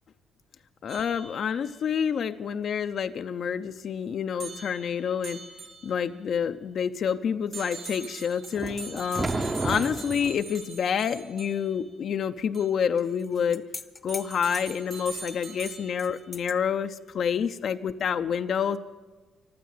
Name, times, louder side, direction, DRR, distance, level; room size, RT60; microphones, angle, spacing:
voice 1, 0.8-5.4 5.8-13.6 14.0-18.8, left 7 dB, 60° left, 8 dB, 0.5 m, -28 dB
sound 1, 0.9-1.8 4.4-6.2 7.5-11.9 12.5-12.8 14.1-16.2, right 4 dB, 60° right, 3.8 m, -43 dB
sound 2, 8.4-11.2 11.5-11.6 13.0-16.6, left 3 dB, 25° left, 0.8 m, -45 dB
sound 3, 8.5-10.4, right 2 dB, 25° right, 0.9 m, -31 dB
14.5 x 12.0 x 7.6 m, 1.3 s
cardioid pair, 90°, 0 cm